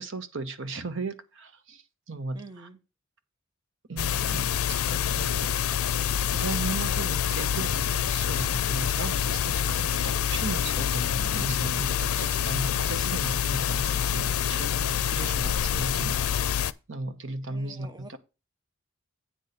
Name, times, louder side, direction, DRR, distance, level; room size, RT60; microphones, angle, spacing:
voice 1, 0.0-2.7 3.9-4.5 4.8-5.5 6.0-16.2 16.9-18.2, right 3 dB, 60° right, 1.0 m, -36 dB
voice 2, 2.3-2.8 17.5-18.2, right 3 dB, 20° right, 0.7 m, -46 dB
sound 1, 4.0-16.7, left 9 dB, 85° left, 0.5 m, -27 dB
9.1 x 4.2 x 6.6 m
head